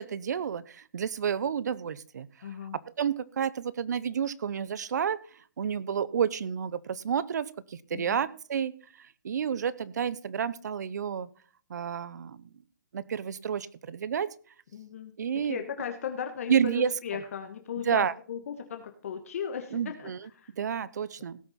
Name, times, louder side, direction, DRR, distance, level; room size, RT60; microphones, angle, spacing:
voice 1, 0.0-2.3 3.0-5.2 5.6-8.7 9.0-11.3 11.7-12.5 12.9-14.4 15.2-15.6 16.5-16.9 17.8-18.1 19.7-20.3 20.6-21.4, right 7 dB, 65° right, 19 dB, 0.7 m, -30 dB
voice 2, 2.4-2.8 7.9-8.2 14.7-15.1 15.4-20.5, left 8 dB, 45° left, 6 dB, 1.3 m, -37 dB
17.5 x 6.8 x 4.2 m, 0.42 s
hypercardioid pair, 175°, 10 cm